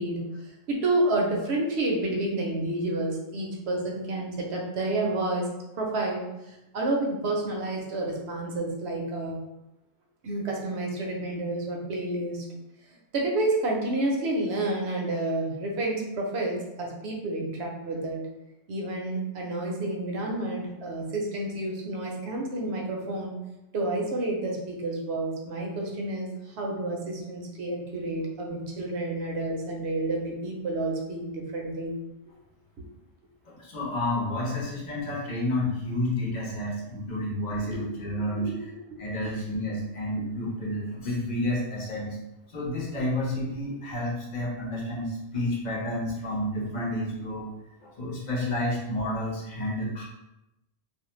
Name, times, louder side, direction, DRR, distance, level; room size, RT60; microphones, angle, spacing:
voice 1, 0.0-5.5 5.8-9.4 10.2-12.4 13.1-18.2 18.7-23.3 23.7-31.9 37.6-39.0, right 2 dB, 75° right, -1 dB, 0.8 m, -30 dB
voice 2, 33.4-38.7 39.0-42.2 42.5-47.5 47.8-50.0, left 1 dB, 45° left, -5 dB, 0.8 m, -30 dB
2.4 x 2.1 x 3.0 m, 0.93 s
omnidirectional pair, 1.1 m